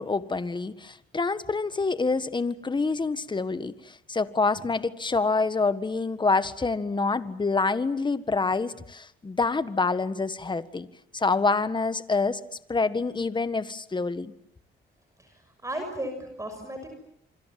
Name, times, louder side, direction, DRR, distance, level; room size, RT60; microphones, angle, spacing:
voice 1, 0.0-10.9 11.1-12.4 12.7-14.3, left 4 dB, 25° left, 13 dB, 1.6 m, -27 dB
voice 2, 15.2-17.0, right 1 dB, 15° right, 6 dB, 6.5 m, -36 dB
27.5 x 25.0 x 7.6 m, 0.70 s
cardioid pair, 90°, 20 cm